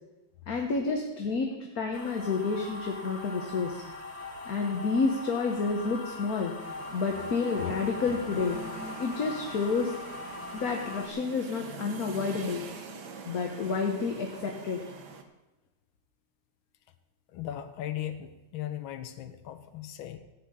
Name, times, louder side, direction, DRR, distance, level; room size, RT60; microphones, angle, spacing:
voice 1, 0.5-1.5 1.7-3.8 4.4-6.5 6.9-8.6 9.0-9.9 10.5-12.6 13.2-14.8, left 4 dB, 50° left, 1 dB, 1.5 m, -29 dB
sound 1, 1.9-11.1, left 2 dB, 35° left, 1.7 m, -41 dB
sound 2, 6.6-15.2, right 4 dB, 60° right, 1.6 m, -44 dB
voice 2, 17.3-20.2, left 11 dB, 80° left, 8 dB, 1.6 m, -37 dB
14.5 x 5.9 x 8.7 m, 1.0 s
omnidirectional pair, 2.2 m